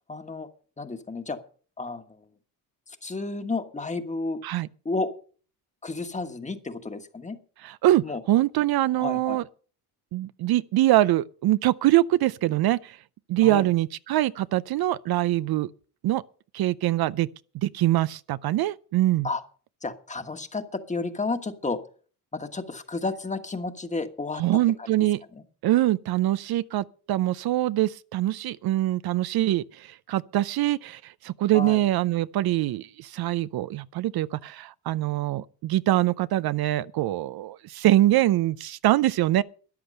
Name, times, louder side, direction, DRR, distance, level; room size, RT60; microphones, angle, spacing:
voice 1, 0.1-0.5 0.8-1.4 1.8-2.2 2.9-4.4 4.8-5.1 5.8-7.4 8.0-8.2 9.0-9.4 13.4-13.7 19.2-19.4 19.8-21.8 22.3-24.4 24.8-24.9 25.3-25.4 31.5-31.8, left 3 dB, 20° left, 1.4 m, -31 dB
voice 2, 7.6-9.4 10.1-13.0 13.3-15.7 16.0-16.2 16.5-17.3 17.5-19.3 24.4-25.2 25.6-39.4, right 15 dB, 65° right, 0.5 m, -24 dB
13.5 x 10.5 x 5.4 m
cardioid pair, 130°, 40 cm